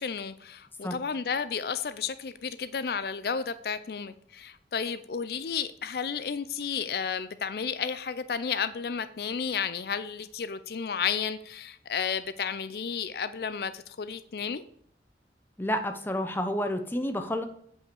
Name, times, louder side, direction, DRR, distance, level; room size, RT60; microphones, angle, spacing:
voice 1, 0.0-14.6, left 6 dB, 60° left, 0.4 m, -32 dB
voice 2, 15.6-17.5, left 1 dB, 10° left, 0.8 m, -30 dB
7.9 x 5.7 x 6.9 m
head